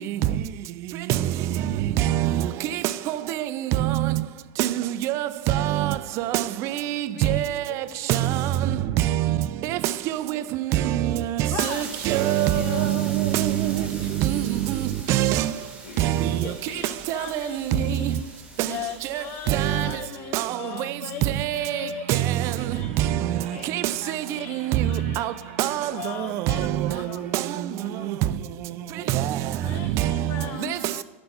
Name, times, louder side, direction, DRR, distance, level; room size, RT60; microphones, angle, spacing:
voice 1, 2.0-2.5 3.1-4.2 4.6-7.6 8.1-9.4 9.6-9.8 10.1-10.4 10.7-14.8 15.1-15.5 16.0-16.4 17.1-18.1 18.6-18.7 19.1-19.9 20.3-20.6 21.4-21.8 22.1-22.5 23.0-23.8 24.1-24.2 24.5-25.3 25.6-27.1 27.3-27.4 28.0-28.1 29.1-29.4 29.9-30.4 30.7-30.8, right 13 dB, 45° right, 0.4 m, -24 dB
voice 2, 7.1-9.2 12.1-12.2 12.5-13.6 15.8-16.9 23.5-24.1 27.8-29.2, left 5 dB, 80° left, 1.4 m, -43 dB
voice 3, 11.5-11.9 16.4-18.3 18.7-22.3 22.6-22.9 24.0-25.5 25.9-27.2 29.6-31.0, left 11 dB, 35° left, 0.4 m, -38 dB
sound 1, 11.6-20.1, right 2 dB, 20° right, 2.0 m, -43 dB
sound 2, 20.5-27.6, right 7 dB, 70° right, 1.7 m, -44 dB
11.0 x 4.2 x 5.6 m
hypercardioid pair, 110°, 7 cm